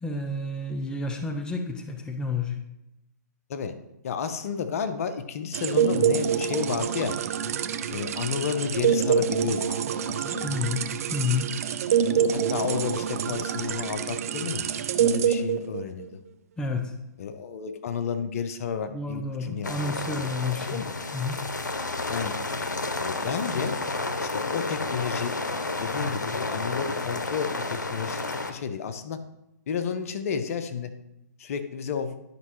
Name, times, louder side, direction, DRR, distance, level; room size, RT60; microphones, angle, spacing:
voice 1, 0.0-2.6 10.4-10.8 11.1-11.5 16.6-16.9 18.9-20.8 21.1-21.4, left 3 dB, 10° left, 5 dB, 0.6 m, -30 dB
voice 2, 4.0-7.2 7.9-9.8 10.2-10.6 12.3-14.7 15.0-16.2 17.2-20.2 20.7-20.9 22.1-22.3 23.0-23.8 24.2-25.4 25.8-29.2 29.7-30.9 31.4-32.2, left 7 dB, 50° left, 9 dB, 0.7 m, -31 dB
sound 1, 5.5-16.1, right 8 dB, 55° right, 0.5 m, -26 dB
sound 2, 19.6-28.5, left 3 dB, 90° left, 0.7 m, -31 dB
11.0 x 5.4 x 3.1 m, 0.87 s
hypercardioid pair, 130°, 10 cm